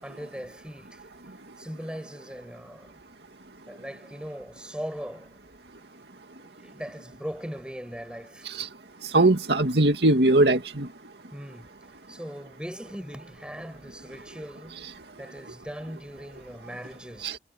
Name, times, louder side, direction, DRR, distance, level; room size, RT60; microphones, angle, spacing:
voice 1, 0.0-1.1 1.6-3.0 3.7-5.3 6.4-8.5 11.3-11.8 12.1-14.9 15.2-17.4, equal, 5° right, 6.6 m, -39 dB
voice 2, 9.1-10.9 17.2-17.4, right 2 dB, 70° right, 2.2 m, -20 dB
head